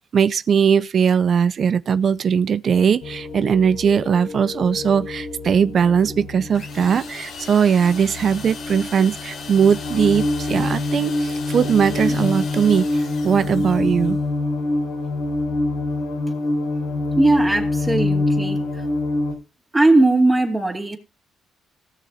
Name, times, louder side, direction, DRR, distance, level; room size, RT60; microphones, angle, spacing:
voice 1, 0.1-14.2, right 7 dB, 55° right, 0.5 m, -19 dB
sound 1, 3.0-19.3, left 2 dB, 90° left, 4.0 m, -26 dB
sound 2, 6.5-14.2, left 5 dB, 70° left, 2.4 m, -38 dB
voice 2, 17.2-18.6 19.7-21.0, right 2 dB, 15° right, 2.5 m, -18 dB
18.0 x 6.3 x 4.0 m
cardioid pair, 90°, 0 cm